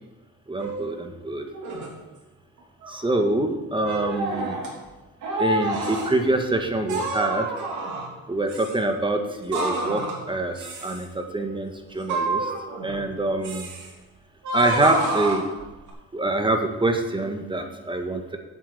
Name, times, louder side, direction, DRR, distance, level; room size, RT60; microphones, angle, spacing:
voice 1, 0.5-1.5 2.9-4.6 5.4-7.5 8.3-12.4 12.8-13.7 14.5-15.4 16.1-18.4, right 2 dB, 15° right, 5 dB, 1.6 m, -25 dB
sound 1, 0.6-1.0 1.5-1.9 2.6-3.2 3.8-4.7 5.2-6.1 6.9-8.2 8.5-8.7 9.5-10.2 10.6-11.0 12.0-13.1 13.4-13.9 14.4-15.9, right 2 dB, 75° right, 3.0 m, -28 dB
8.3 x 8.0 x 8.0 m, 1.1 s
cardioid pair, 90°, 30 cm